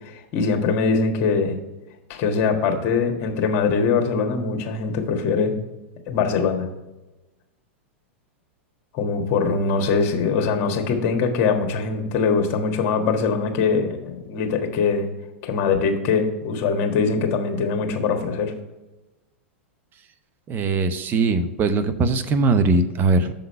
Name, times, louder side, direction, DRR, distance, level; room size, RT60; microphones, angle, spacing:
voice 1, 0.0-1.6 2.1-5.5 6.1-6.6 8.9-15.1 15.4-18.5, left 5 dB, 45° left, 4 dB, 1.4 m, -22 dB
voice 2, 20.5-23.3, right 3 dB, 30° right, 9 dB, 0.7 m, -20 dB
6.9 x 3.9 x 6.4 m, 1.0 s
hypercardioid pair, 110°, 7 cm